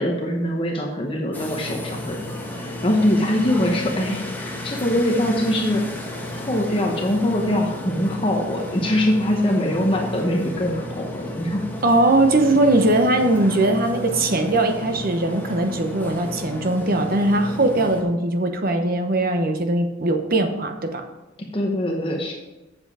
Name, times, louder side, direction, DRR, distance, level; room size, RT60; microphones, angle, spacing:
voice 1, 0.0-5.8 6.3-11.6 21.5-22.3, left 1 dB, 25° left, 0 dB, 1.0 m, -23 dB
sound 1, 1.3-18.0, left 1 dB, 10° left, 1.3 m, -33 dB
voice 2, 11.8-21.0, right 2 dB, 50° right, 6 dB, 0.9 m, -20 dB
8.0 x 7.1 x 4.9 m, 1.0 s
head